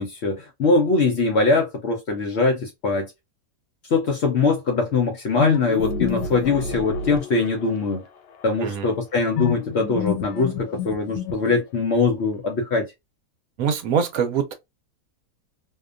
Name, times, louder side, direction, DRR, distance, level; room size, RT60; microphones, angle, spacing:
voice 1, 0.0-3.1 3.9-8.0 8.4-12.9, left 3 dB, 60° left, 0.7 m, -22 dB
sound 1, 5.4-7.9 9.4-11.8, left 7 dB, 80° left, 1.2 m, -28 dB
voice 2, 13.6-14.5, right 7 dB, 65° right, 1.1 m, -23 dB
2.8 x 2.2 x 2.3 m
omnidirectional pair, 1.8 m